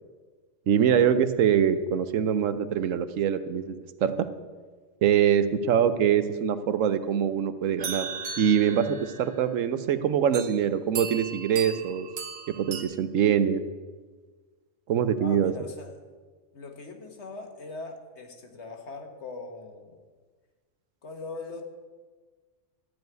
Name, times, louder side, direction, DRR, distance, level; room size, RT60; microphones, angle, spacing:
voice 1, 0.7-4.3 5.0-12.1 12.6-13.6 14.9-15.5, right 8 dB, 85° right, 12 dB, 1.1 m, -24 dB
sound 1, 7.8-9.5 10.3-10.6 11.0-12.8, right 6 dB, 60° right, 1.2 m, -36 dB
voice 2, 15.2-15.9 16.5-20.0 21.0-21.6, left 3 dB, 60° left, 4 dB, 1.6 m, -41 dB
13.5 x 5.3 x 9.2 m, 1.4 s
omnidirectional pair, 1.3 m